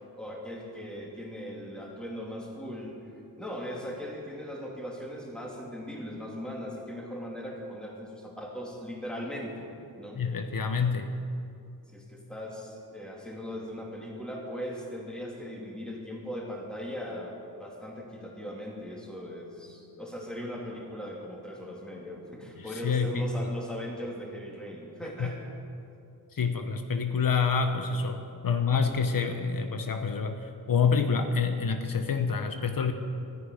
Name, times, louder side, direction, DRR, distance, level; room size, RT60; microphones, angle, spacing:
voice 1, 0.2-2.9 3.4-9.7 10.0-10.2 11.9-25.4, equal, ahead, -2 dB, 2.9 m, -39 dB
voice 2, 10.2-11.1 22.6-23.2 25.2-25.3 26.3-32.9, left 5 dB, 65° left, 6 dB, 0.9 m, -27 dB
13.5 x 11.0 x 10.0 m, 2.6 s
wide cardioid pair, 140°, 36 cm